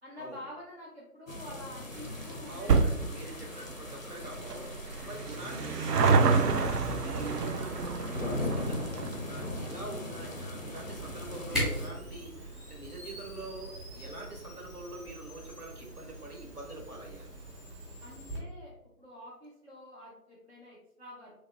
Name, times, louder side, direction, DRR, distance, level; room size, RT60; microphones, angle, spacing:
voice 1, 0.0-2.9 18.0-21.3, left 1 dB, 45° right, -6 dB, 0.6 m, -48 dB
sound 1, 1.3-11.9, left 1 dB, 60° left, 0.5 m, -40 dB
sound 2, 1.9-14.7 15.0-15.1 15.9-16.0 16.2-16.3 16.6-16.7, right 4 dB, 90° right, 0.6 m, -31 dB
voice 2, 2.5-17.3, right 2 dB, 75° right, 0 dB, 1.1 m, -45 dB
Camera, 10.9-18.4, equal, ahead, 0.7 m, -40 dB
2.8 x 2.7 x 2.5 m, 0.87 s
figure-of-eight pair, 175°, 46 cm